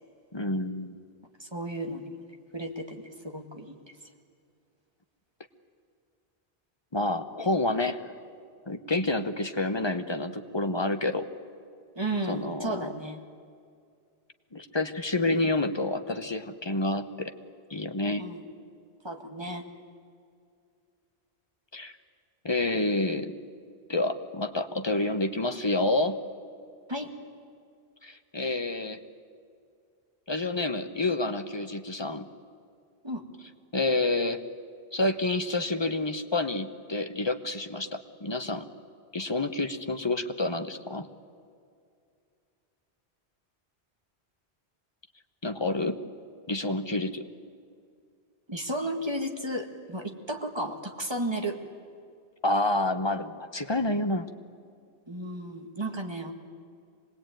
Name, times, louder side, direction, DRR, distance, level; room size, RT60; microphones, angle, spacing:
voice 1, 0.3-0.9 6.9-8.0 8.7-11.2 12.3-12.9 14.5-17.3 17.7-18.2 21.7-21.9 22.4-23.3 23.9-26.2 28.0-29.0 30.3-32.3 33.7-34.4 34.9-38.6 39.1-41.1 45.4-46.0 46.5-47.2 52.4-54.3, left 2 dB, 25° left, 8 dB, 1.0 m, -28 dB
voice 2, 1.4-2.0 2.5-3.8 12.0-13.2 18.2-18.4 19.0-19.6 26.9-27.1 33.0-33.2 48.5-51.6 55.1-56.3, right 1 dB, 25° right, 3 dB, 1.8 m, -33 dB
25.5 x 19.5 x 9.1 m, 2.3 s
omnidirectional pair, 1.1 m